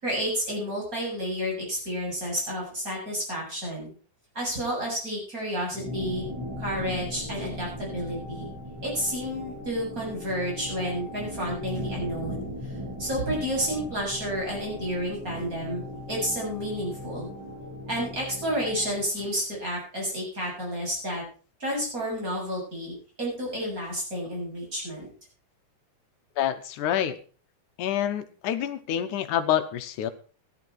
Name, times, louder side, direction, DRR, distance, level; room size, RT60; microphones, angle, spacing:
voice 1, 0.0-3.9 4.3-6.2 6.6-8.5 8.8-12.4 13.0-17.3 17.9-21.2 21.6-25.1, equal, 25° right, -3 dB, 7.7 m, -30 dB
sound 1, 5.7-19.1, equal, 70° right, 5.6 m, -38 dB
voice 2, 26.4-27.2 27.8-30.1, left 10 dB, 80° left, 9 dB, 2.4 m, -27 dB
14.0 x 11.0 x 4.6 m, 0.38 s
omnidirectional pair, 3.6 m